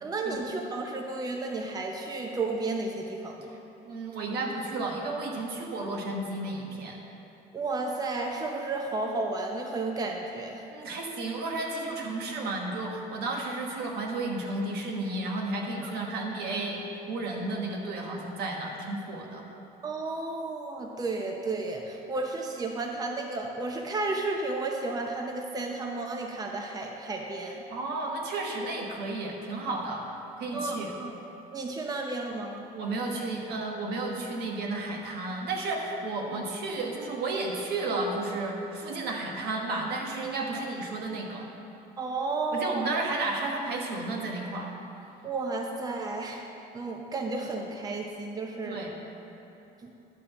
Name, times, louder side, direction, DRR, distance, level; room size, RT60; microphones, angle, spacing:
voice 1, 0.0-3.5 7.5-10.6 15.8-15.9 19.8-27.6 30.5-31.1 31.5-32.6 36.3-36.4 42.0-42.9 45.2-46.4 46.7-48.8 49.8-49.9, right 3 dB, 20° right, 2 dB, 0.7 m, -32 dB
voice 2, 3.8-7.0 10.7-16.8 17.1-19.4 27.7-30.0 30.4-30.9 32.7-41.5 42.5-44.7 48.6-48.9, right 2 dB, 70° right, 0 dB, 1.4 m, -32 dB
11.0 x 3.7 x 7.1 m, 2.9 s
cardioid pair, 110°, 17 cm